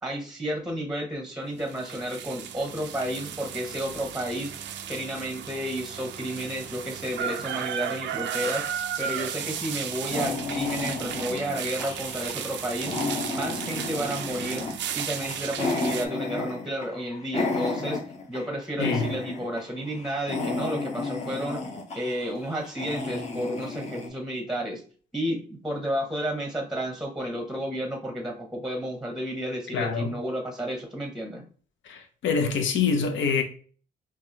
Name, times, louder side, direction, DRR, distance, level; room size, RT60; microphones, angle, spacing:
voice 1, 0.0-8.7 9.0-13.0 13.3-14.6 14.9-18.0 18.3-21.6 21.9-24.8 25.1-31.4, equal, ahead, 0.8 m, -31 dB
sound 1, 1.6-16.1, right 9 dB, 65° right, 0.4 m, -35 dB
sound 2, 9.4-18.5 18.8-19.6 19.9-24.1, left 3 dB, 35° left, 0.9 m, -32 dB
voice 2, 29.7-30.1 31.9-33.4, left 5 dB, 70° left, 0.8 m, -25 dB
4.6 x 2.3 x 2.8 m
cardioid pair, 90°, 20 cm